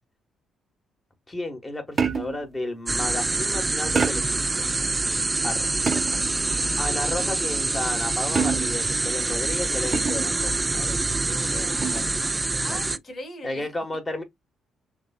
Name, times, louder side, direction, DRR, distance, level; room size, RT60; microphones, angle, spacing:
voice 1, 1.3-4.7 5.4-5.7 6.8-12.8 13.4-14.2, left 2 dB, 20° left, 1.5 m, -33 dB
sound 1, 2.0-2.5 4.0-4.5 5.9-6.4 8.4-8.9 9.9-10.4 11.8-12.2, right 5 dB, 35° right, 0.7 m, -27 dB
sound 2, 2.9-13.0, right 3 dB, 20° right, 0.3 m, -26 dB
voice 2, 6.2-7.6 11.3-12.1 12.6-13.7, left 1 dB, 45° left, 2.0 m, -42 dB
6.4 x 2.2 x 2.4 m
cardioid pair, 90°, 0 cm